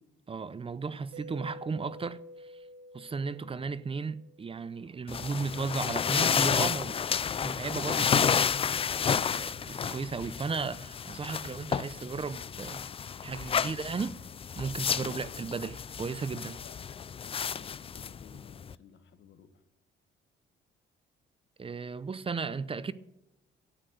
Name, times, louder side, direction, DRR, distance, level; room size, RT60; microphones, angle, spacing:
voice 1, 0.3-2.6 2.9-6.9 7.4-8.4 9.1-14.1 14.6-16.6 21.6-22.9, right 5 dB, 25° right, 0.7 m, -35 dB
Mallet percussion, 1.1-4.9, equal, 70° right, 0.9 m, -49 dB
sound 1, 5.1-18.7, left 7 dB, 30° left, 0.4 m, -31 dB
voice 2, 6.8-7.6 13.5-13.8 15.0-15.2 16.6-16.8 17.2-19.6, left 7 dB, 65° left, 1.7 m, -54 dB
13.0 x 8.9 x 7.9 m
cardioid pair, 90°, 20 cm